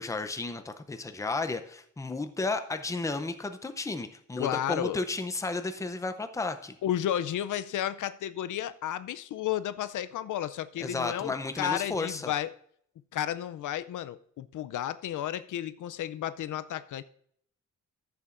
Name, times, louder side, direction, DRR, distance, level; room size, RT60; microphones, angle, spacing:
voice 1, 0.0-6.8 10.8-12.3, left 3 dB, 10° left, 0.5 m, -33 dB
voice 2, 4.4-5.0 6.8-12.5 13.1-17.0, left 11 dB, 80° left, 0.5 m, -32 dB
15.0 x 6.9 x 2.5 m
wide cardioid pair, 165°, 30 cm